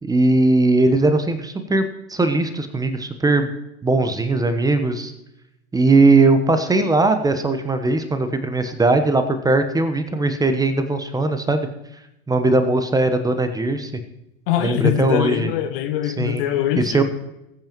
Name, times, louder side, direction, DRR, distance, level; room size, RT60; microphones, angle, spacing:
voice 1, 0.0-3.5 3.8-5.1 5.7-11.7 12.3-13.9 14.6-15.5 16.2-16.4 16.8-17.0, right 2 dB, 10° right, 8 dB, 1.1 m, -19 dB
voice 2, 14.5-17.0, left 11 dB, 55° left, 7 dB, 1.3 m, -22 dB
20.0 x 8.9 x 3.1 m, 0.86 s
figure-of-eight pair, 85°, 34 cm